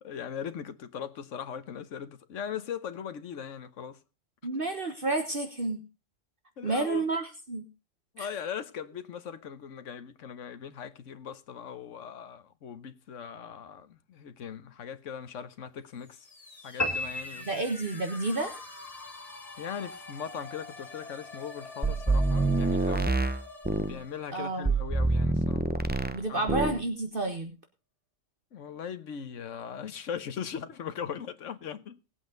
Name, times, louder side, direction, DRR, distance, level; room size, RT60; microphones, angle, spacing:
voice 1, 0.0-4.0 6.6-7.1 8.1-16.2 16.6-17.5 19.6-23.1 23.8-25.6 26.3-26.6 28.5-32.0, left 8 dB, 70° left, 1.3 m, -39 dB
voice 2, 4.4-5.8 6.6-7.6 8.2-8.3 17.5-18.6 24.3-24.7 26.1-27.5, right 2 dB, 45° right, 1.5 m, -30 dB
sound 1, 15.9-25.7, left 3 dB, 30° left, 1.6 m, -46 dB
sound 2, 16.8-18.3, left 1 dB, 15° left, 1.5 m, -33 dB
sound 3, 21.8-24.0 24.7-26.2 26.5-26.8, right 3 dB, 10° right, 0.5 m, -26 dB
19.0 x 8.4 x 3.9 m
omnidirectional pair, 1.3 m